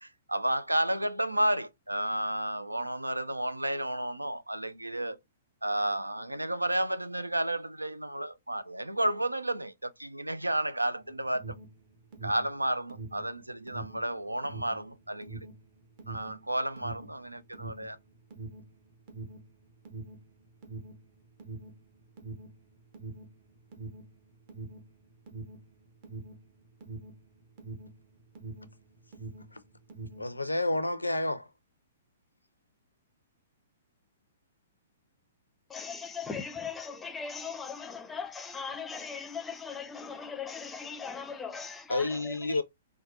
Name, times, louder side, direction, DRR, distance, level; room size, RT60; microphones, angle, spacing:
voice 1, 0.0-5.2 5.6-11.4 12.2-15.4 16.1-18.0, right 1 dB, 85° right, 0.3 m, -32 dB
Alarm, 11.0-28.8 29.1-30.3, right 3 dB, 45° right, 0.9 m, -44 dB
voice 2, 30.2-31.5 41.9-42.6, left 2 dB, 85° left, 0.5 m, -30 dB
voice 3, 35.7-42.6, left 5 dB, 10° left, 0.5 m, -39 dB
4.0 x 2.2 x 2.5 m
figure-of-eight pair, 115°, 0 cm